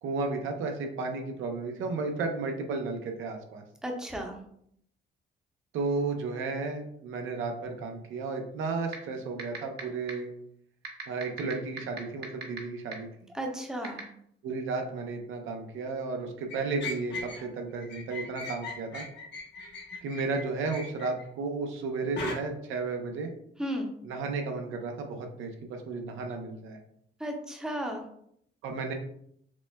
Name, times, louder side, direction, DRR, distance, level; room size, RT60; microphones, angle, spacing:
voice 1, 0.0-3.6 5.7-10.3 11.1-13.1 14.4-19.0 20.0-23.3 24.0-26.8 28.6-28.9, right 4 dB, 80° right, 3 dB, 0.6 m, -33 dB
voice 2, 3.8-4.4 13.3-14.0 23.6-23.9 27.2-28.0, equal, 5° right, 2 dB, 0.7 m, -34 dB
sound 1, 8.9-9.0 9.4-9.8 10.1-10.2 10.8-12.6 12.9-13.0 13.8-14.0, right 6 dB, 55° right, 0.9 m, -35 dB
sound 2, 16.5-17.5 17.8-21.2 22.2-22.3, left 3 dB, 60° left, 1.0 m, -38 dB
5.9 x 2.1 x 2.2 m, 0.69 s
cardioid pair, 90°, 20 cm